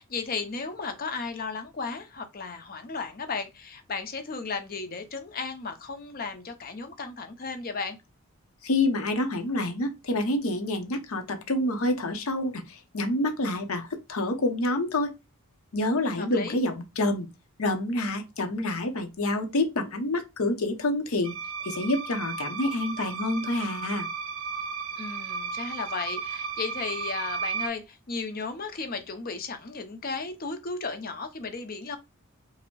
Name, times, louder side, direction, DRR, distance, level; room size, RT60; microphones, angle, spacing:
voice 1, 0.0-8.0 16.2-16.6 25.0-32.0, left 4 dB, 40° left, 0.5 m, -35 dB
voice 2, 8.6-15.1 15.7-17.3 17.6-21.3 21.6-24.1, left 1 dB, 75° left, 0.7 m, -27 dB
sound 1, 21.2-27.7, right 5 dB, 70° right, 0.5 m, -34 dB
5.1 x 2.1 x 2.2 m
head